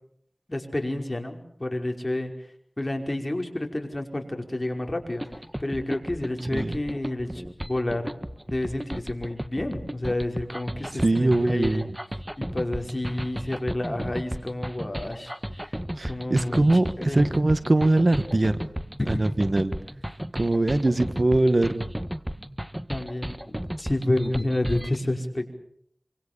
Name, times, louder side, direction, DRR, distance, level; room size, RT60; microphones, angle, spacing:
voice 1, 0.5-2.3 2.8-5.2 5.6-8.1 8.5-11.8 12.4-15.3 15.6-15.7 16.1-17.3 19.0-19.2 22.9-25.5, left 1 dB, 35° left, 4 dB, 5.2 m, -30 dB
sound 1, 5.2-25.0, equal, 10° right, 1.7 m, -34 dB
voice 2, 10.9-11.9 16.0-18.6 19.1-19.7 20.3-21.9, right 2 dB, 55° right, 11 dB, 1.6 m, -22 dB
27.0 x 25.5 x 7.0 m, 0.67 s
wide cardioid pair, 50°, 0 cm